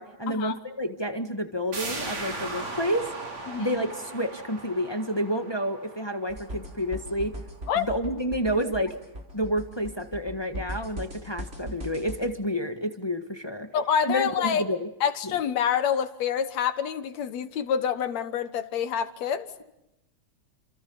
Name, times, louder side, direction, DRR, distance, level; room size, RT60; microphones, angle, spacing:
voice 1, 0.0-3.1 3.6-7.4 7.7-9.0 9.3-13.7 14.1-14.9 15.2-15.3, equal, 40° left, 6 dB, 0.3 m, -29 dB
sound 1, 1.7-7.2 7.6-7.7, right 2 dB, 60° right, 6.1 m, -38 dB
voice 2, 3.5-3.8 7.7-7.9 13.7-14.6 15.0-19.6, left 8 dB, 70° left, 11 dB, 2.4 m, -27 dB
sound 2, 6.3-12.3, right 1 dB, 20° right, 4.3 m, -39 dB
30.0 x 27.5 x 7.1 m, 0.88 s
omnidirectional pair, 3.4 m